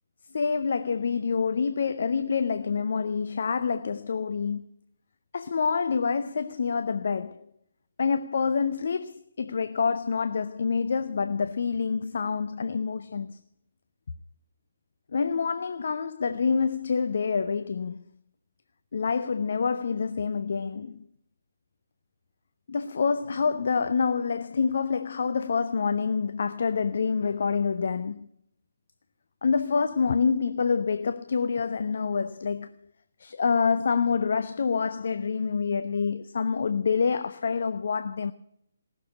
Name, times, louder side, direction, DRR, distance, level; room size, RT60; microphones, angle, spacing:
voice 1, 0.3-4.7 5.3-7.5 8.0-13.4 15.1-18.0 18.9-21.0 22.7-28.3 29.4-32.8 33.2-38.3, left 5 dB, 55° left, 0.6 m, -27 dB
18.0 x 6.8 x 9.5 m
figure-of-eight pair, 140°, 0 cm